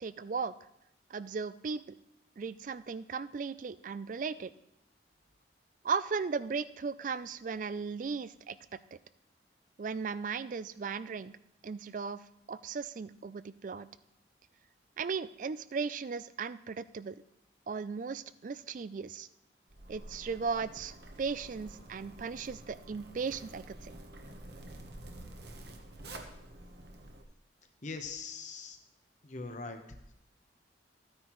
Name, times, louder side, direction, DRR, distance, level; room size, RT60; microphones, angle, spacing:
voice 1, 0.0-0.5 1.1-2.0 2.4-4.5 5.8-8.6 9.8-11.3 11.6-12.2 12.5-13.9 15.0-17.2 17.7-19.3 19.9-23.9, right 5 dB, 45° right, 15 dB, 0.4 m, -36 dB
Zipper (clothing), 19.7-27.2, right 1 dB, 60° right, 1.1 m, -49 dB
voice 2, 27.8-28.8 29.2-29.8, left 4 dB, 40° left, 6 dB, 1.0 m, -41 dB
14.5 x 9.5 x 3.1 m, 0.81 s
head